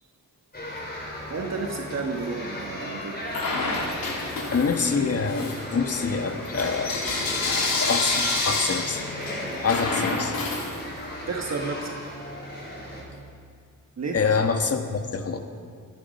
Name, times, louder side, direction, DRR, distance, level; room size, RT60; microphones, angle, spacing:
sound 1, 0.5-13.0, left 1 dB, 30° left, 5.1 m, -36 dB
voice 1, 1.3-3.2 11.3-11.9 14.0-14.3, right 4 dB, 50° right, 2 dB, 1.4 m, -31 dB
Bell / Coin (dropping), 3.3-4.9 5.2-11.2, left 3 dB, 90° left, 3.2 m, -28 dB
voice 2, 4.5-7.0 7.4-9.1 9.6-10.4 14.1-15.4, left 5 dB, 45° left, 6 dB, 1.4 m, -26 dB
25.0 x 10.0 x 5.4 m, 2.2 s
wide cardioid pair, 115°, 34 cm